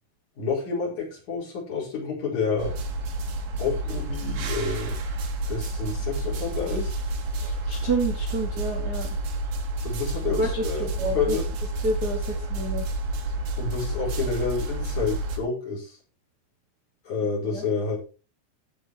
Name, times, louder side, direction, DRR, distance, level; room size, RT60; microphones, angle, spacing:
voice 1, 0.4-2.7 3.6-5.0 5.5-7.0 9.8-11.5 13.6-16.0 17.0-18.0, left 5 dB, 45° left, -4 dB, 6.2 m, -29 dB
sound 1, 2.6-15.4, right 2 dB, 60° right, 2.7 m, -30 dB
voice 2, 7.4-9.2 10.4-11.4 11.8-12.9 17.5-17.6, right 2 dB, 80° right, 1 dB, 0.9 m, -29 dB
15.0 x 5.7 x 4.8 m, 0.35 s
omnidirectional pair, 4.8 m